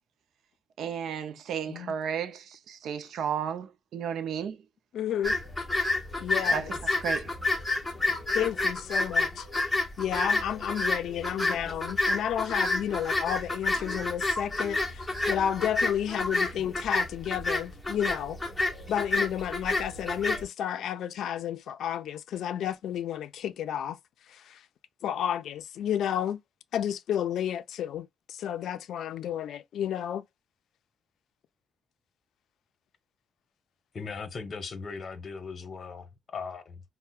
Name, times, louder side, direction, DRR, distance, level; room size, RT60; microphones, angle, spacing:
voice 1, 0.8-4.6 6.5-7.3, right 8 dB, 70° right, 0.5 m, -33 dB
voice 2, 4.9-5.4 6.2-6.7 8.3-9.4 10.0-14.8 15.3-18.4 18.9-24.0 25.0-26.4 26.7-30.2, left 10 dB, 75° left, 0.4 m, -31 dB
sound 1, 5.2-20.4, left 2 dB, 10° left, 0.9 m, -30 dB
voice 3, 33.9-36.8, left 5 dB, 35° left, 0.9 m, -38 dB
5.4 x 2.1 x 2.3 m
cardioid pair, 145°, 0 cm